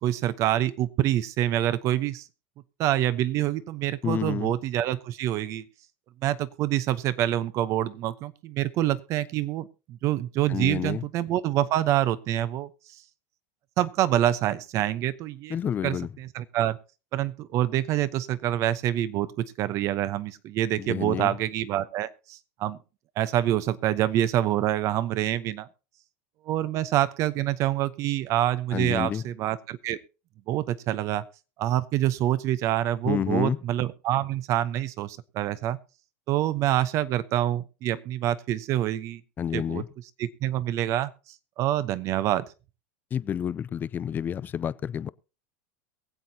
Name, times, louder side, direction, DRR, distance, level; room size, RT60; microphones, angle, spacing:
voice 1, 0.0-2.3 2.8-5.6 6.2-12.7 13.8-15.6 15.8-16.8 17.1-22.8 23.2-25.7 26.5-30.0 30.5-31.2 31.6-35.8 36.3-39.2 39.5-39.8 40.2-41.1 41.6-42.5, right 13 dB, 45° right, 0.9 m, -26 dB
voice 2, 4.0-4.5 10.5-11.0 15.5-16.1 20.8-21.4 28.7-29.2 33.0-33.6 39.4-39.9 43.1-45.1, left 8 dB, 25° left, 0.5 m, -29 dB
23.0 x 7.8 x 2.8 m
supercardioid pair, 120°, 7 cm